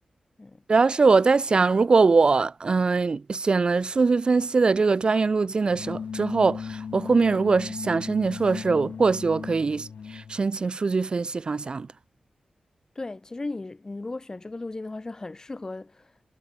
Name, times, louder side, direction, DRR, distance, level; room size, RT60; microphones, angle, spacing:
voice 1, 0.7-11.9, right 4 dB, 40° right, 0.3 m, -22 dB
sound 1, 5.7-10.4, left 6 dB, 85° left, 1.9 m, -37 dB
voice 2, 12.9-16.1, left 2 dB, 25° left, 1.3 m, -36 dB
wide cardioid pair, 120°, 2 cm